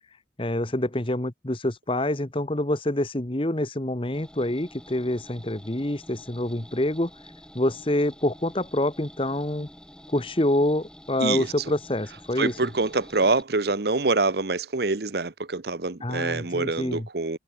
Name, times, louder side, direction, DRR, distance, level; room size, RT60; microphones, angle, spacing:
voice 1, 0.4-7.1 7.5-9.7 10.1-12.5 16.0-17.1, left 1 dB, 30° left, 1.3 m, -26 dB
sound 1, 4.1-13.4, equal, 5° left, 4.2 m, -49 dB
voice 2, 12.4-17.4, right 3 dB, 55° right, 0.9 m, -25 dB
head